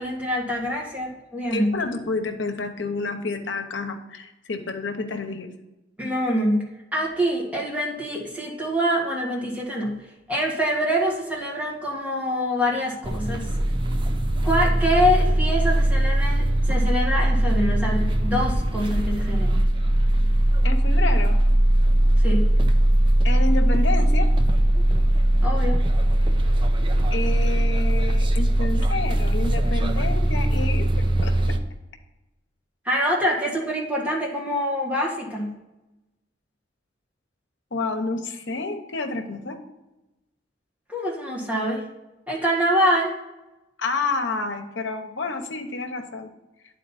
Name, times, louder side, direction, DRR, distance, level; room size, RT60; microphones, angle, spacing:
voice 1, 0.0-1.8 6.0-13.5 14.4-19.6 22.2-22.5 25.4-25.8 32.8-35.5 40.9-41.8 42.3-43.1, equal, 10° right, -3 dB, 1.7 m, -25 dB
voice 2, 1.5-5.5 20.6-21.4 23.2-24.3 27.1-30.9 31.2-31.6 37.7-39.6 43.8-46.3, left 3 dB, 75° left, 5 dB, 1.0 m, -29 dB
sound 1, 13.0-31.6, right 1 dB, 25° right, 0.5 m, -20 dB
9.8 x 4.2 x 4.1 m, 1.0 s
head